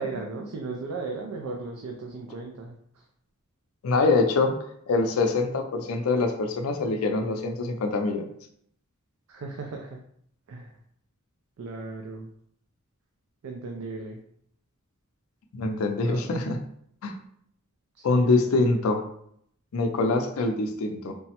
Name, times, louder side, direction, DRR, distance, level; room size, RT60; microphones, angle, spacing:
voice 1, 0.0-3.0 9.3-10.0 10.5-10.7 11.6-12.3 13.4-14.2 16.0-16.3 17.9-18.7, right 3 dB, 80° right, 1 dB, 0.4 m, -36 dB
voice 2, 3.8-4.5 4.9-8.3 15.5-16.6 17.0-17.1 18.0-19.0 19.7-21.1, left 3 dB, 90° left, 5 dB, 0.4 m, -24 dB
3.3 x 2.0 x 2.8 m, 0.67 s
head